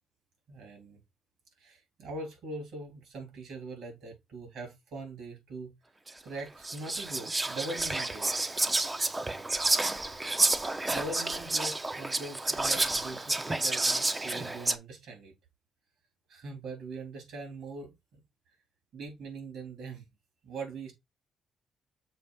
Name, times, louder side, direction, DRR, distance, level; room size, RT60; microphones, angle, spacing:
voice 1, 0.5-1.0 1.6-5.7 6.2-8.5 10.4-15.3 16.3-17.9 18.9-20.0 20.4-20.9, right 3 dB, 70° right, 3.3 m, -42 dB
Whispering, 6.1-6.2 6.6-14.8, right 2 dB, 20° right, 0.6 m, -30 dB
6.7 x 2.6 x 5.5 m
cardioid pair, 90°, 0 cm